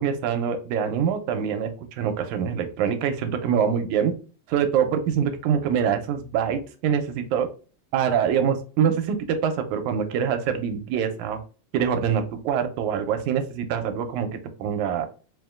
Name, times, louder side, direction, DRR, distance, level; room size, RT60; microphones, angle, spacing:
voice 1, 0.0-1.7 2.0-4.1 4.5-7.5 7.9-11.4 11.7-15.1, right 8 dB, 90° right, 7 dB, 2.0 m, -24 dB
4.8 x 2.1 x 3.4 m, 0.37 s
omnidirectional pair, 3.3 m